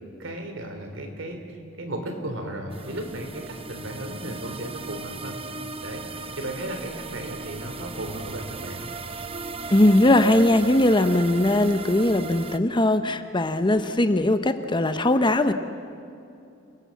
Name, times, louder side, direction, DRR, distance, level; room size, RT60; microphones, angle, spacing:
voice 1, 0.2-1.4 1.8-5.4 5.8-8.9, right 1 dB, 70° right, 5 dB, 3.7 m, -35 dB
sound 1, 2.7-12.6, right 4 dB, 30° right, 0.9 m, -37 dB
voice 2, 9.7-15.5, left 1 dB, 25° left, 10 dB, 0.9 m, -20 dB
29.0 x 18.5 x 7.4 m, 2.6 s
head